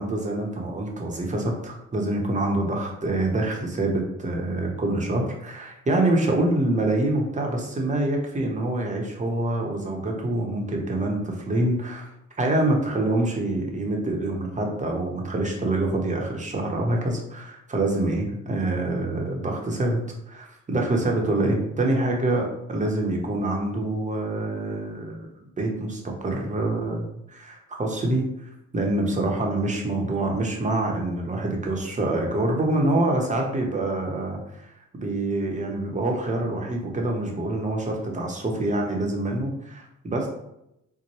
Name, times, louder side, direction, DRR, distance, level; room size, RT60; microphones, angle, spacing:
voice 1, 0.0-12.0 12.4-20.0 20.3-22.4 22.7-25.3 25.6-28.2 28.7-34.4 34.9-40.3, right 2 dB, 25° right, 0 dB, 0.9 m, -26 dB
4.2 x 2.2 x 3.0 m, 0.82 s
cardioid pair, 90°, 30 cm